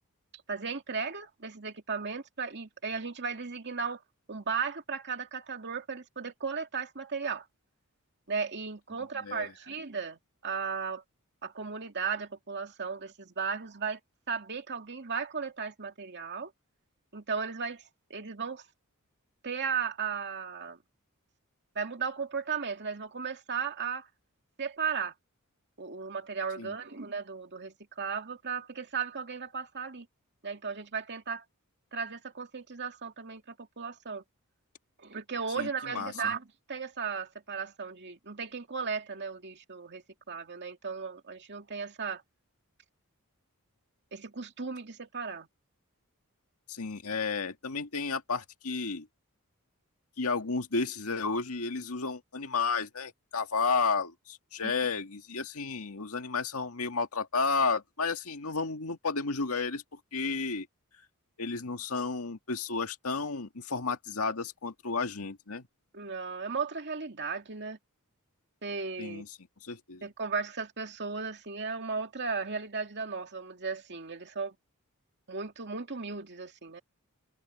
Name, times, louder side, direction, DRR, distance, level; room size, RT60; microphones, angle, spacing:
voice 1, 0.5-4.0 4.3-7.5 8.3-11.0 11.4-14.0 14.3-16.5 17.1-17.8 18.1-18.7 19.4-20.8 21.7-24.1 24.6-25.1 25.8-30.1 30.4-31.4 31.9-34.2 35.0-42.2 44.1-45.5 54.6-54.9 65.9-67.8 68.6-69.2 70.0-74.5 75.3-76.8, right 5 dB, 55° right, 2.4 m, -36 dB
voice 2, 35.6-36.1 46.7-49.1 50.2-59.8 60.1-60.7 61.4-65.6 69.0-69.3 69.6-70.1, left 4 dB, 80° left, 2.0 m, -32 dB
head